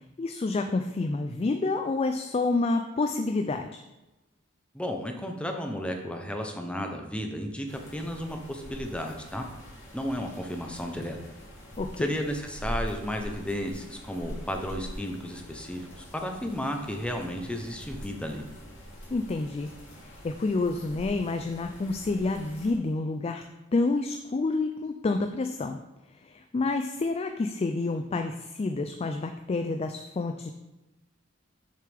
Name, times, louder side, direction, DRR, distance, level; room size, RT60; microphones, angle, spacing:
voice 1, 0.2-3.8 11.8-12.1 19.1-19.7 20.0-23.4 23.7-25.8 26.2-30.5, left 3 dB, 30° left, 7 dB, 0.4 m, -28 dB
voice 2, 4.7-9.5 9.9-11.2 12.0-18.5, equal, 5° left, 3 dB, 0.8 m, -33 dB
sound 1, 7.7-22.7, equal, 70° left, 2.5 m, -43 dB
6.6 x 6.6 x 3.5 m, 1.0 s
head